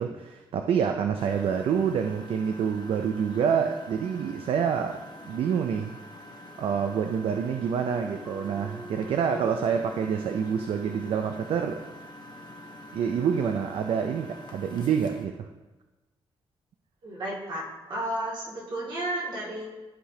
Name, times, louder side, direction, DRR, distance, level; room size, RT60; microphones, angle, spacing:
voice 1, 0.0-6.0 6.6-11.8 12.9-15.5, right 7 dB, 70° right, 5 dB, 0.4 m, -27 dB
Engine, 1.2-15.3, left 1 dB, 50° left, 0.8 m, -46 dB
sound 1, 8.2-13.4, right 2 dB, 15° right, 0.8 m, -47 dB
voice 2, 17.0-19.7, right 1 dB, 55° right, -4 dB, 2.3 m, -32 dB
13.5 x 4.9 x 2.8 m, 1.2 s
wide cardioid pair, 165°, 10 cm